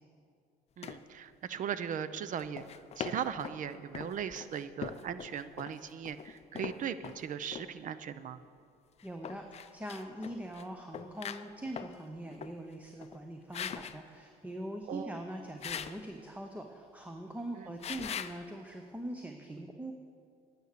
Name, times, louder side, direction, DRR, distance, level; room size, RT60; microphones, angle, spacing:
sound 1, 0.8-1.0 2.4-3.6 3.9-7.2 7.5-7.7 9.0-10.6 10.9-12.0 12.3-12.6 13.0-13.2 13.5-14.0 15.6-16.0 17.8-18.4, left 8 dB, 40° left, 0.5 m, -41 dB
voice 1, 0.8-2.6 3.0-8.4 14.9-15.1 17.6-17.7, right 8 dB, 50° right, 13 dB, 0.6 m, -38 dB
voice 2, 9.0-19.9, right 1 dB, 10° right, 4 dB, 0.7 m, -42 dB
9.8 x 9.5 x 6.6 m, 2.3 s
cardioid pair, 110°, 17 cm